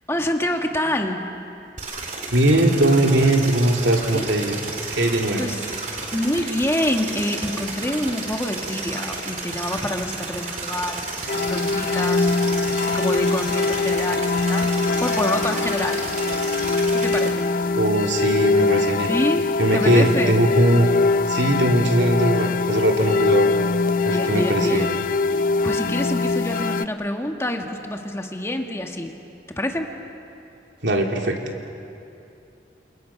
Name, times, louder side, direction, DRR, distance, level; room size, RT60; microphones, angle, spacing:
voice 1, 0.1-1.3 4.1-4.3 5.4-5.7 6.1-12.3 12.8-16.1 16.9-17.5 19.1-20.4 24.1-24.9 25.6-29.1 29.5-29.9, left 1 dB, 15° left, 3 dB, 1.6 m, -27 dB
sound 1, 1.8-17.3, right 3 dB, 45° right, 3.4 m, -32 dB
voice 2, 2.3-4.6 4.9-5.5 17.8-19.1 19.6-20.9 21.3-23.5 24.0-24.8 30.8-31.4, right 1 dB, 85° right, 2 dB, 2.8 m, -20 dB
sound 2, 11.3-26.9, left 3 dB, 50° left, 0.5 m, -22 dB
28.5 x 28.0 x 5.9 m, 2.7 s
head